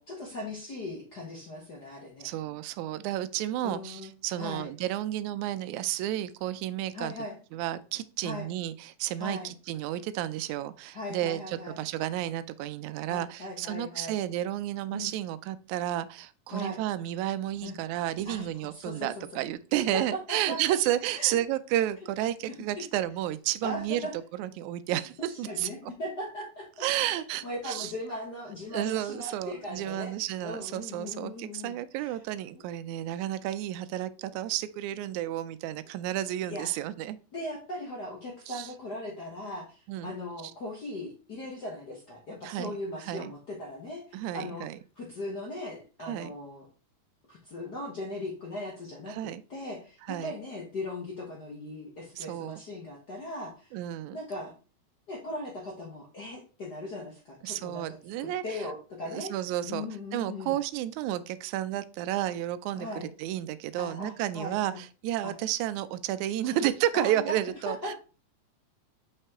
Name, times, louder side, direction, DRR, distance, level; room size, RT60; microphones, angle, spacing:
voice 1, 0.0-2.3 3.6-4.1 4.4-4.7 6.9-7.4 8.2-8.5 9.2-9.5 10.9-11.8 13.1-14.1 14.9-15.1 16.5-16.8 17.6-17.7 18.2-18.5 18.7-19.4 19.9-20.0 20.3-20.8 21.1-21.4 22.7-22.8 23.6-24.1 25.5-26.8 27.4-30.1 30.4-32.2 32.5-32.6 36.5-36.8 37.3-44.7 45.0-46.6 47.3-53.8 54.1-54.5 55.1-57.9 58.2-59.3 59.6-60.5 62.7-63.1 63.8-64.8 65.2-65.3 66.5-66.6 66.9-67.3 67.6-67.9, left 1 dB, 60° left, -2 dB, 1.1 m, -39 dB
voice 2, 2.2-7.1 7.5-24.1 24.4-25.9 26.8-27.9 28.7-37.2 38.5-38.7 39.9-40.1 42.4-43.3 44.1-44.8 46.1-46.3 49.1-49.4 50.1-50.3 52.2-52.6 53.7-54.2 57.4-58.6 59.0-59.9 60.1-67.9, right 13 dB, 80° right, 13 dB, 1.8 m, -32 dB
5.8 x 5.3 x 3.6 m, 0.36 s
omnidirectional pair, 3.7 m